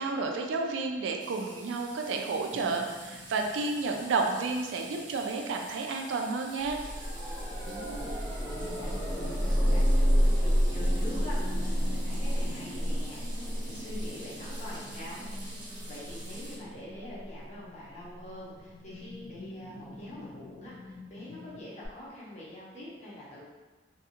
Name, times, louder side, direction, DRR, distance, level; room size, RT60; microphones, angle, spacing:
voice 1, 0.0-6.8, right 3 dB, 85° right, 2 dB, 0.3 m, -31 dB
sound 1, 1.2-16.6, right 1 dB, 25° right, 0.8 m, -48 dB
sound 2, 2.5-6.5 6.8-6.9 7.1-21.6, left 2 dB, 70° left, 0.4 m, -49 dB
sound 3, 6.6-19.5 21.8-21.9, equal, ahead, 0.9 m, -30 dB
voice 2, 7.6-8.5 8.8-13.2 13.5-15.2 15.5-15.6 15.9-23.4, left 1 dB, 35° left, -8 dB, 0.7 m, -45 dB
2.6 x 2.4 x 2.7 m, 1.3 s
head